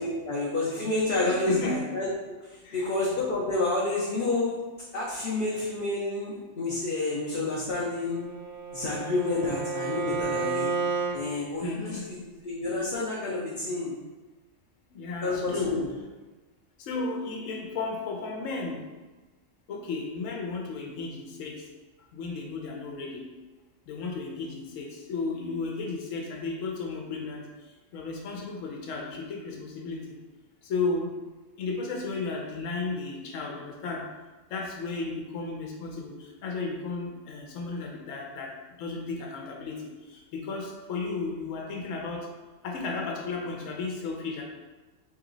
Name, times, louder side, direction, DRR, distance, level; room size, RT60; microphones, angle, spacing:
voice 1, 0.0-2.1 2.5-4.6 4.9-8.2 8.7-10.7 11.1-12.2 12.4-13.9 15.2-15.9, left 2 dB, 55° left, -5 dB, 0.7 m, -29 dB
voice 2, 1.2-1.8 2.6-2.9 10.7-10.8 11.6-12.0 14.9-15.7 16.8-18.8 19.7-21.7 22.1-23.2 23.9-27.5 27.9-30.2 30.6-31.1 31.6-34.0 34.5-42.3 42.6-44.4, left 3 dB, 85° left, 0 dB, 1.0 m, -34 dB
Bowed string instrument, 8.0-11.2, right 4 dB, 60° right, 0.6 m, -31 dB
3.0 x 3.0 x 3.8 m, 1.2 s
omnidirectional pair, 1.3 m